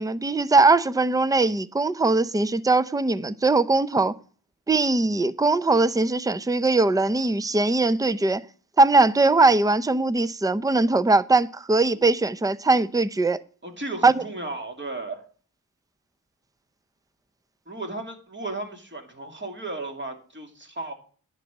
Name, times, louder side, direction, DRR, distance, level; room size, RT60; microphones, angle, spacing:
voice 1, 0.0-4.1 4.7-8.4 8.8-13.4 14.0-14.1, right 3 dB, 10° right, 0.5 m, -20 dB
voice 2, 13.6-15.2 17.7-20.9, right 2 dB, 30° right, 2.5 m, -35 dB
10.5 x 5.4 x 7.4 m
wide cardioid pair, 60°, 38 cm